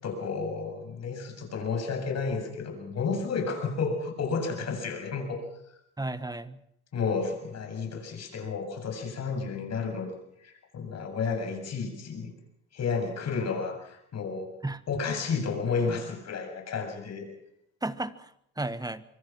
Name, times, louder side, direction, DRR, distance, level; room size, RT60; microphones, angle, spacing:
voice 1, 0.0-5.4 6.9-12.3 12.7-14.5 14.9-17.3, left 5 dB, 60° left, 4 dB, 7.6 m, -31 dB
voice 2, 6.0-6.6 14.6-14.8 17.8-19.0, right 2 dB, 15° right, 13 dB, 1.4 m, -34 dB
25.5 x 23.0 x 6.2 m, 0.75 s
cardioid pair, 90°, 30 cm